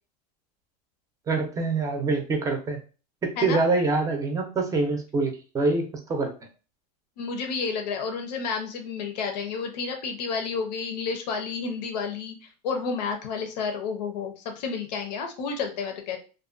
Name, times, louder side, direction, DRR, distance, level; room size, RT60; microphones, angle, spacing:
voice 1, 1.3-2.8 3.2-6.3, right 3 dB, 15° right, 3 dB, 0.5 m, -25 dB
voice 2, 7.2-12.4 12.6-16.2, left 5 dB, 85° left, 4 dB, 0.7 m, -30 dB
2.5 x 2.2 x 2.4 m, 0.35 s
supercardioid pair, 145°, 21 cm